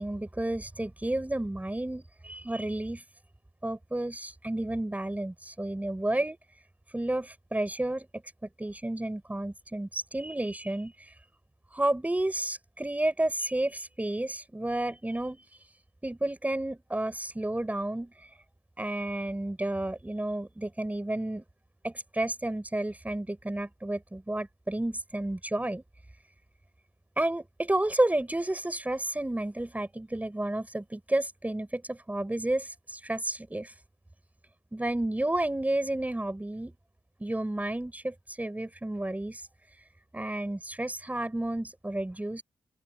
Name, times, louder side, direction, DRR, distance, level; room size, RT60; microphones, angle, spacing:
voice 1, 0.0-3.0 3.6-6.4 6.9-11.1 11.7-15.4 16.0-18.1 18.8-21.4 21.8-25.8 27.2-33.7 34.7-36.7 37.2-39.4 40.1-42.4, right 1 dB, 15° right, 6.2 m, -31 dB
open air
cardioid pair, 75°, 11 cm